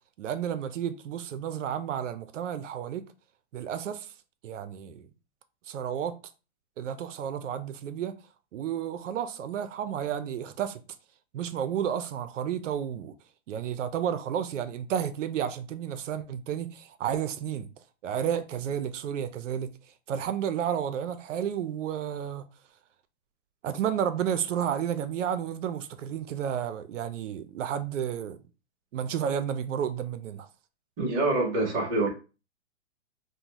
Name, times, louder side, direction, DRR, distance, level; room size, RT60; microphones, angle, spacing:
voice 1, 0.2-3.1 3.5-4.1 4.4-5.1 5.7-6.2 6.8-8.2 8.5-10.8 11.3-13.1 13.5-17.7 18.0-19.7 20.1-22.4 23.6-28.4 28.9-30.5, right 9 dB, 80° right, 0.5 m, -31 dB
voice 2, 31.0-32.1, right 2 dB, 15° right, 0.5 m, -25 dB
2.6 x 2.1 x 2.9 m
hypercardioid pair, 155°, 36 cm